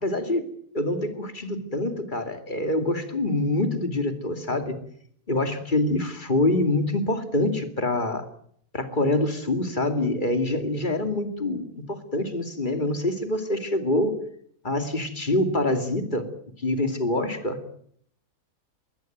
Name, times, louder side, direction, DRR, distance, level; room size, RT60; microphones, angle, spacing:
voice 1, 0.0-0.4 0.7-4.8 5.3-8.3 8.7-14.2 14.6-16.3 16.6-17.6, left 1 dB, 30° left, 8 dB, 2.6 m, -25 dB
21.5 x 17.5 x 9.2 m, 0.64 s
omnidirectional pair, 1.7 m